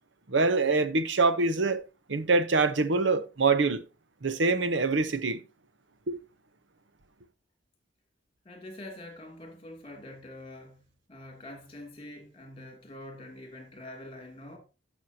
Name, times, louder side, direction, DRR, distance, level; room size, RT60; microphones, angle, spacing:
voice 1, 0.3-1.8 2.1-3.8 4.2-5.4 6.1-6.2, right 3 dB, 70° right, 0.8 m, -25 dB
voice 2, 8.4-14.6, left 1 dB, 30° left, 2.6 m, -45 dB
15.0 x 6.3 x 2.8 m
head